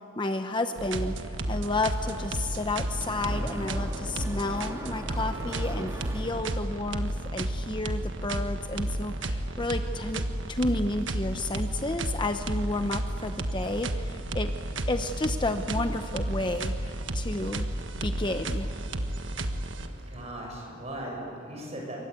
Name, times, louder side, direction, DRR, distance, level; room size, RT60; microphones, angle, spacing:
voice 1, 0.2-10.2 10.5-14.5 14.9-17.7 18.0-18.7, left 2 dB, 25° left, 7 dB, 0.9 m, -31 dB
sound 1, 0.8-20.2, right 1 dB, 70° right, 1.6 m, -32 dB
Mechanisms, 1.9-7.1, right 1 dB, 15° right, 2.3 m, -41 dB
voice 2, 20.1-22.0, right 1 dB, 35° right, -1 dB, 7.9 m, -38 dB
28.0 x 24.0 x 8.3 m, 3.0 s
head